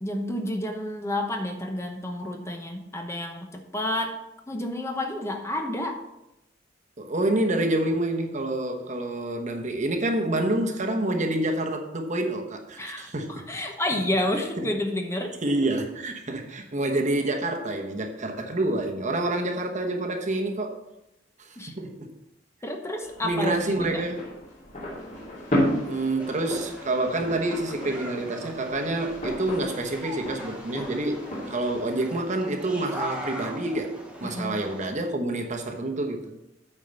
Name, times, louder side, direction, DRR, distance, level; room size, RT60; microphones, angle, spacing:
voice 1, 0.0-4.2 4.5-6.0 12.8-15.3 21.6-21.7 22.6-24.0 34.2-34.6, left 1 dB, 15° left, 4 dB, 0.9 m, -30 dB
voice 2, 7.0-13.5 13.9-14.0 14.6-14.7 15.4-20.8 21.4-22.2 23.2-24.3 25.8-36.3, right 2 dB, 40° right, 3 dB, 1.1 m, -28 dB
sound 1, 23.0-31.8, equal, 40° left, 2.8 m, -33 dB
sound 2, 26.2-34.9, equal, 5° right, 1.2 m, -40 dB
8.7 x 4.8 x 6.8 m, 0.88 s
head